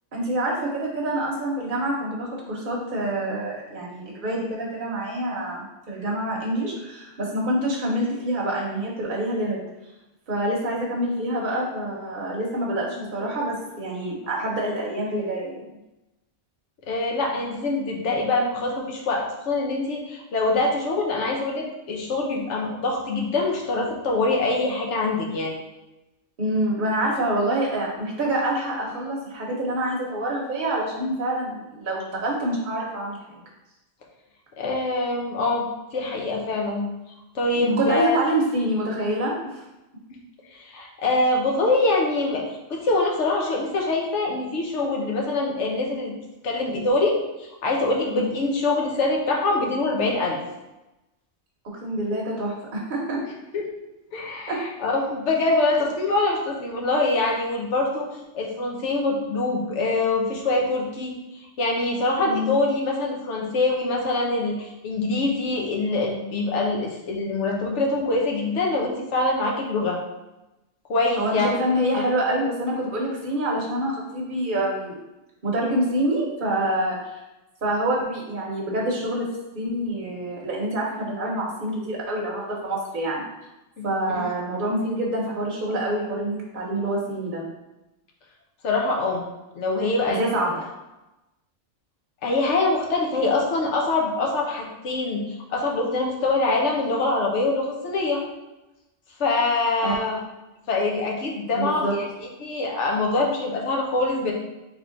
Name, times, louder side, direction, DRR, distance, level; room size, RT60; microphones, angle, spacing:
voice 1, 0.1-9.6 10.3-15.6 26.4-33.4 37.6-39.6 48.1-48.3 51.8-53.2 54.5-54.6 62.2-62.6 71.2-75.0 75.4-77.2 77.6-83.3 83.8-87.4 90.1-90.6 99.8-99.9 101.5-101.9, right 1 dB, 50° right, -3 dB, 0.9 m, -26 dB
voice 2, 16.9-25.6 34.6-36.8 37.3-38.2 40.6-42.4 42.7-46.1 46.4-50.4 53.5-53.6 54.1-58.1 58.3-70.0 70.9-71.5 71.9-72.0 83.8-83.9 84.1-84.3 88.6-89.2 89.5-90.3 92.2-98.2 99.2-100.2 100.7-104.3, left 2 dB, 75° left, -1 dB, 1.1 m, -24 dB
3.5 x 3.3 x 3.8 m, 0.99 s
omnidirectional pair, 1.2 m